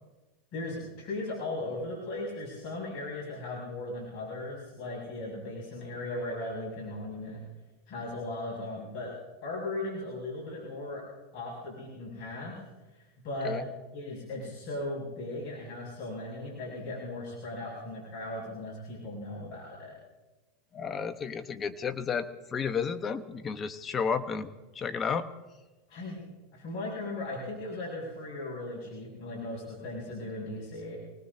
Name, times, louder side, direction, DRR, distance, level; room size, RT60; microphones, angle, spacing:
voice 1, 0.5-7.4 7.9-9.1 9.4-11.0 11.3-12.6 13.2-13.6 13.9-20.0 25.9-26.2 26.5-31.0, left 2 dB, 55° left, -4 dB, 6.8 m, -37 dB
voice 2, 20.7-24.5 24.7-25.3, left 6 dB, 25° left, 10 dB, 1.1 m, -32 dB
27.5 x 19.0 x 2.8 m, 1.1 s
supercardioid pair, 115°, 0 cm